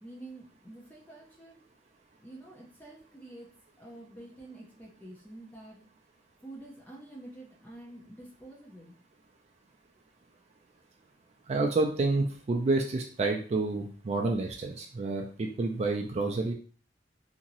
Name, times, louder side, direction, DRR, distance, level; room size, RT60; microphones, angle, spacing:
voice 1, 0.0-1.6 2.2-3.5 3.8-5.8 6.4-8.9, right 1 dB, 10° left, -4 dB, 0.6 m, -48 dB
voice 2, 11.5-16.5, right 3 dB, 40° right, 2 dB, 0.4 m, -29 dB
2.9 x 2.7 x 2.6 m, 0.43 s
head